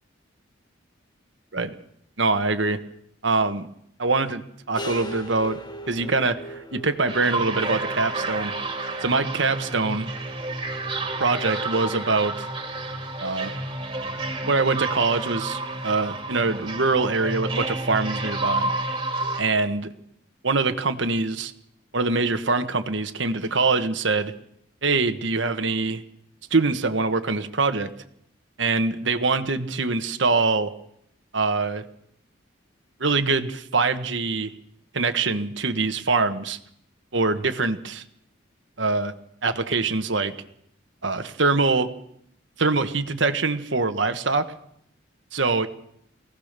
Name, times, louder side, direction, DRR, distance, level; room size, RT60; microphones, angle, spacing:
voice 1, 2.2-2.8 3.2-3.7 4.0-5.6 5.9-8.5 9.0-10.1 11.2-12.5 13.2-13.5 14.5-18.7 19.4-19.9 20.4-21.5 21.9-24.3 24.8-26.0 26.5-27.9 28.6-30.7 31.3-31.8 33.0-34.5 34.9-36.6 37.1-38.0 38.8-39.1 39.4-40.3 41.0-41.9 42.6-44.4 45.3-45.7, right 3 dB, 70° right, 8 dB, 1.3 m, -24 dB
sound 1, 4.7-10.5, right 1 dB, 20° left, 1.8 m, -40 dB
sound 2, 7.1-19.4, right 2 dB, 25° right, 2.5 m, -30 dB
23.0 x 17.0 x 6.7 m, 0.72 s
head